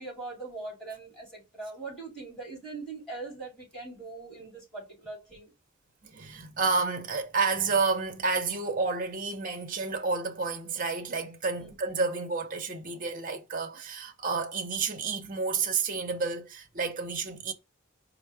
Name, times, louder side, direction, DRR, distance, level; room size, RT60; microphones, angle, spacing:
voice 1, 0.0-5.5 11.6-11.7, right 3 dB, 5° left, 2.7 m, -41 dB
voice 2, 6.0-17.5, right 4 dB, 40° right, 0.7 m, -30 dB
4.5 x 2.0 x 4.6 m
head